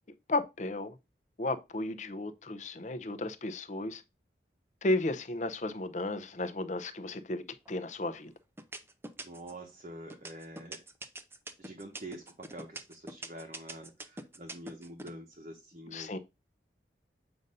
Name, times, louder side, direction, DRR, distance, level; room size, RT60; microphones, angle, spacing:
voice 1, 0.3-1.0 1.4-4.0 4.8-8.3 15.9-16.2, left 2 dB, 40° left, 0.5 m, -34 dB
sound 1, 7.7-8.1 8.6-9.6 10.1-15.1, right 2 dB, 15° right, 0.4 m, -43 dB
voice 2, 9.2-10.8 11.6-16.2, right 1 dB, 40° right, 0.8 m, -46 dB
7.7 x 2.6 x 5.4 m
head